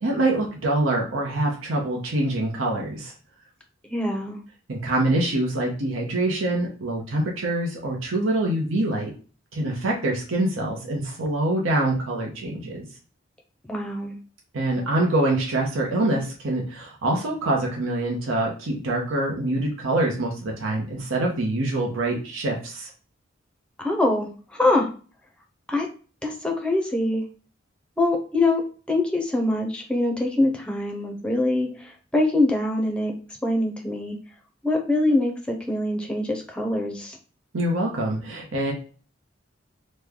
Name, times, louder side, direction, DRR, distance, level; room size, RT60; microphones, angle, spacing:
voice 1, 0.0-3.1 4.7-9.1 9.5-12.9 14.5-22.9 37.5-38.7, right 1 dB, 85° right, -1 dB, 0.8 m, -25 dB
voice 2, 3.8-4.4 13.6-14.1 23.8-24.9 25.7-25.9 26.2-27.2 28.0-28.6 28.9-33.1 33.4-34.2 34.6-37.2, left 2 dB, 5° left, 1 dB, 0.6 m, -24 dB
3.1 x 2.2 x 3.5 m, 0.38 s
head